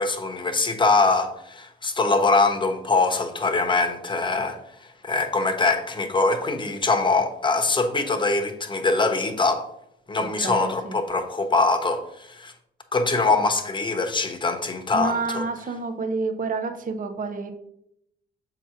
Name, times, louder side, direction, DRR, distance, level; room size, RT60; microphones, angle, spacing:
voice 1, 0.0-9.7 10.1-12.5 12.9-15.4, left 3 dB, 25° left, 5 dB, 1.0 m, -23 dB
voice 2, 10.2-10.9 14.9-17.5, right 3 dB, 40° right, 7 dB, 0.7 m, -29 dB
7.1 x 3.0 x 5.7 m, 0.77 s
cardioid pair, 90°, 20 cm